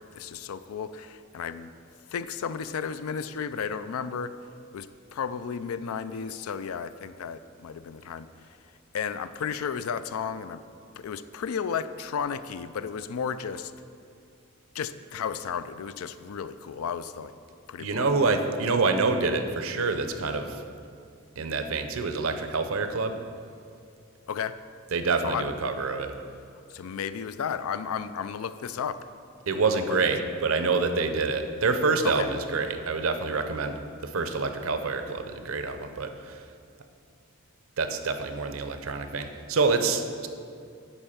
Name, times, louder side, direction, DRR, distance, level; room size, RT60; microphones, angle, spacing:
voice 1, 0.0-1.7 2.1-4.3 4.7-4.9 5.1-8.3 8.9-10.6 11.0-13.7 14.7-17.3 17.7-18.1 24.3-24.5 25.2-25.4 26.7-29.0 29.7-30.0 32.0-32.3, left 7 dB, 85° left, 13 dB, 0.4 m, -33 dB
voice 2, 17.8-20.6 21.4-23.2 24.9-26.1 29.5-36.4 37.8-40.3, right 4 dB, 70° right, 8 dB, 0.6 m, -27 dB
10.0 x 4.4 x 5.8 m, 2.4 s
head